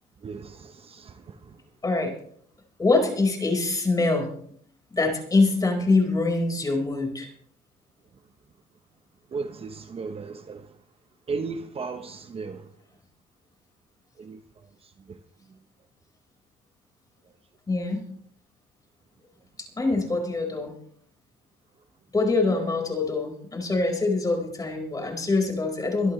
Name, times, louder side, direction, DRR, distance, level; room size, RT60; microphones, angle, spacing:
voice 1, 0.2-1.6 9.3-10.7 11.3-12.7 14.2-14.4 15.1-15.2, right 4 dB, 35° right, 1.1 m, -35 dB
voice 2, 1.8-2.1 2.8-4.3 4.9-7.3 17.7-18.0 19.8-20.7 22.1-26.1, left 3 dB, 20° left, 5.0 m, -24 dB
24.0 x 12.0 x 3.3 m
cardioid pair, 110°, 17 cm